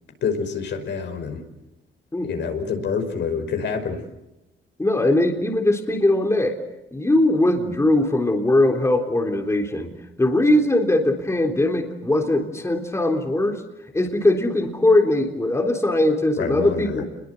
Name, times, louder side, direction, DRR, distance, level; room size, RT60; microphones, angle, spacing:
voice 1, 0.2-1.4 2.2-4.0 16.4-17.0, left 5 dB, 65° left, 5 dB, 5.5 m, -27 dB
voice 2, 4.8-6.6 6.9-9.9 10.2-13.6 13.9-17.0, left 1 dB, 15° left, 3 dB, 3.6 m, -20 dB
28.0 x 22.0 x 8.0 m, 0.92 s
cardioid pair, 90°, 20 cm